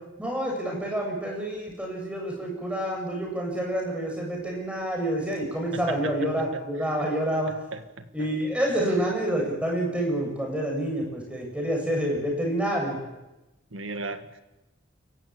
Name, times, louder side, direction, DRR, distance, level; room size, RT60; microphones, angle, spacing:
voice 1, 0.2-7.5 8.1-13.0, right 1 dB, 5° right, 0 dB, 7.6 m, -28 dB
voice 2, 5.7-7.1 7.7-8.1 13.7-14.4, right 3 dB, 80° right, 9 dB, 1.8 m, -37 dB
29.5 x 15.5 x 9.0 m, 1.0 s
head